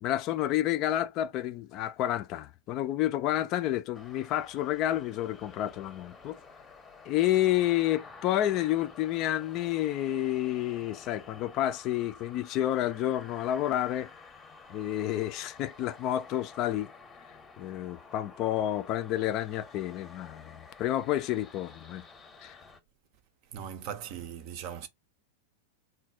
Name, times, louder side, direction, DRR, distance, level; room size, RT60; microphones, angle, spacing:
voice 1, 0.0-6.4 7.1-14.1 14.7-16.9 17.6-22.0 22.4-22.6, left 13 dB, 40° left, 0.3 m, -30 dB
sound 1, 3.9-22.8, left 4 dB, 15° left, 0.7 m, -51 dB
voice 2, 23.5-24.9, right 9 dB, 45° right, 0.6 m, -39 dB
3.8 x 2.2 x 2.6 m
figure-of-eight pair, 95°, 0 cm